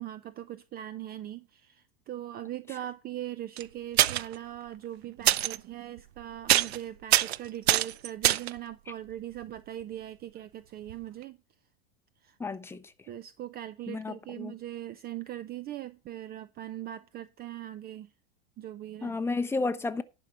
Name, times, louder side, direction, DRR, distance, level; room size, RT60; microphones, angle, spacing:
voice 1, 0.0-11.4 12.2-12.4 13.1-18.1 18.6-19.2, right 12 dB, 30° right, 0.6 m, -40 dB
sound 1, 3.6-3.7 4.0-4.4 5.3-5.6 6.0-6.2 6.5-6.8 7.1-8.6 10.9-11.0 11.2-11.3, right 13 dB, 90° right, 0.5 m, -24 dB
voice 2, 12.4-12.8 13.9-14.5 19.0-20.0, left 3 dB, 10° left, 0.8 m, -32 dB
11.0 x 5.3 x 5.9 m
hypercardioid pair, 100°, 31 cm